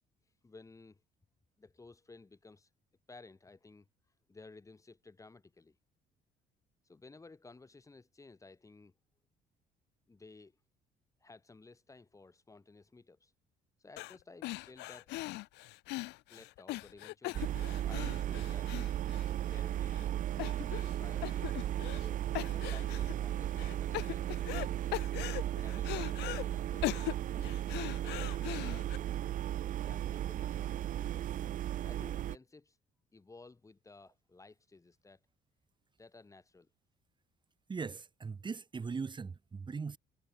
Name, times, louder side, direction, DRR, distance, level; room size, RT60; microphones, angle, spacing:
voice 1, 0.4-1.0 1.6-2.7 3.1-3.9 4.3-5.8 6.8-8.9 10.1-10.6 11.2-13.3 13.8-15.2 16.3-18.9 19.4-20.1 20.6-21.6 22.0-24.8 25.5-27.5 27.7-29.2 29.8-31.3 31.8-32.8 33.1-35.2 36.0-36.7, left 3 dB, 20° left, 3.5 m, -56 dB
sound 1, 14.0-14.2 14.4-19.6 19.9-20.0 20.4-21.0 21.2-22.1 22.3-23.1 23.6-24.7 24.9-26.4 26.8-29.0, left 20 dB, 85° left, 1.1 m, -40 dB
sound 2, 17.3-32.4, right 12 dB, 50° right, 0.6 m, -35 dB
voice 2, 37.7-40.0, right 5 dB, 30° right, 3.2 m, -39 dB
cardioid pair, 110°, 17 cm